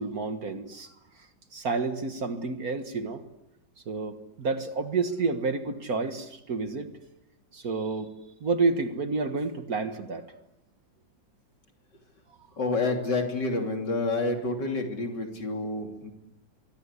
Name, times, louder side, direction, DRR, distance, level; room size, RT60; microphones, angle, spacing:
voice 1, 0.0-3.2 3.9-6.9 7.5-10.3 12.3-12.5, right 4 dB, 50° right, 8 dB, 1.9 m, -30 dB
voice 2, 12.6-16.1, left 3 dB, 60° left, 3 dB, 3.8 m, -28 dB
24.5 x 24.0 x 8.3 m, 0.92 s
omnidirectional pair, 2.1 m